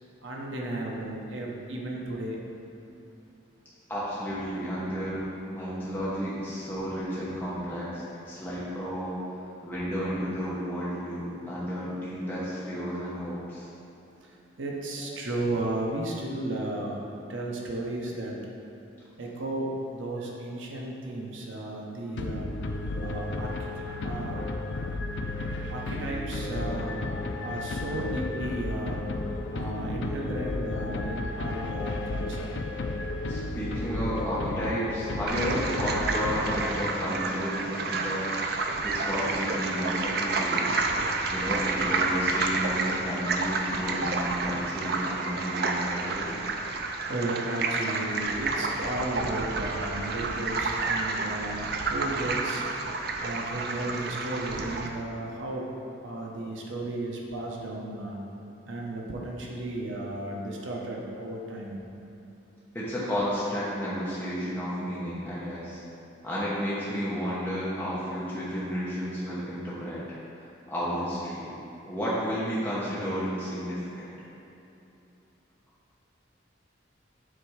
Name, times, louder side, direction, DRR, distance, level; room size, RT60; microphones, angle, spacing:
voice 1, 0.2-2.4 14.2-17.0 17.3-18.4 19.2-22.5 23.0-24.4 25.7-27.1 27.4-29.0 29.5-32.5 47.1-52.6 53.2-55.7 56.0-58.2 58.6-61.8, right 1 dB, 80° right, -2 dB, 0.9 m, -34 dB
voice 2, 3.9-9.2 9.6-13.7 15.0-15.1 33.3-38.3 38.8-40.8 41.3-46.3 62.7-65.8 66.2-70.0 70.3-71.5 71.9-74.1, equal, 10° left, -10 dB, 0.9 m, -32 dB
sound 1, 22.2-37.2, left 2 dB, 65° left, 0.4 m, -33 dB
sound 2, 35.3-54.9, right 3 dB, 55° right, 0.4 m, -30 dB
7.5 x 3.4 x 4.8 m, 2.9 s
head